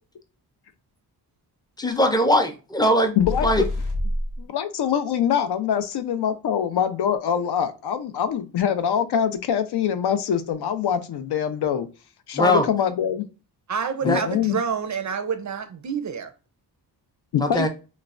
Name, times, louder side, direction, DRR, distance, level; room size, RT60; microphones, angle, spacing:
voice 1, 1.8-3.1 3.4-3.6 12.3-12.6 14.0-14.2 17.4-17.7, equal, 10° left, 0.5 m, -20 dB
sound 1, 3.2-4.4, left 1 dB, 90° left, 0.9 m, -27 dB
voice 2, 3.2-3.7 4.4-11.9 12.3-13.3 14.0-14.6 17.3-17.7, left 8 dB, 70° left, 0.5 m, -24 dB
voice 3, 13.7-16.3, right 6 dB, 45° right, 0.4 m, -28 dB
3.1 x 2.1 x 2.4 m
wide cardioid pair, 95°, 42 cm